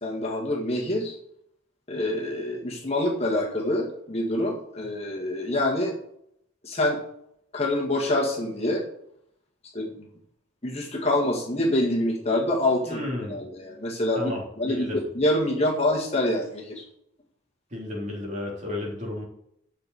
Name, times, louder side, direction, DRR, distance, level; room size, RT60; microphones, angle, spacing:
voice 1, 0.0-1.2 1.9-5.9 6.6-7.0 7.5-8.8 9.7-10.1 10.6-16.9, left 1 dB, 30° left, -1 dB, 1.8 m, -26 dB
voice 2, 12.9-13.4 14.1-15.0 17.7-19.2, left 1 dB, 35° right, -2 dB, 3.4 m, -32 dB
8.3 x 6.0 x 8.1 m, 0.73 s
head